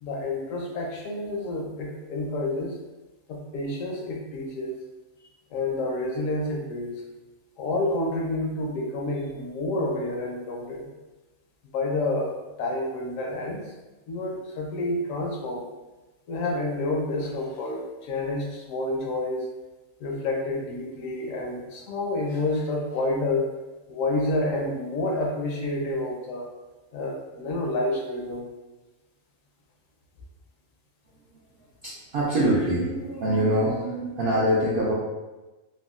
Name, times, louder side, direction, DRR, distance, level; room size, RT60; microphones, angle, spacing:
voice 1, 0.0-2.7 3.3-4.8 5.5-6.9 7.6-10.8 11.7-13.6 14.1-15.6 16.3-19.4 20.0-23.4 23.9-26.5 26.9-28.5, left 2 dB, 75° left, 0 dB, 0.9 m, -29 dB
voice 2, 31.8-34.9, right 1 dB, 70° right, -5 dB, 0.5 m, -24 dB
3.5 x 2.2 x 2.3 m, 1.1 s
omnidirectional pair, 1.5 m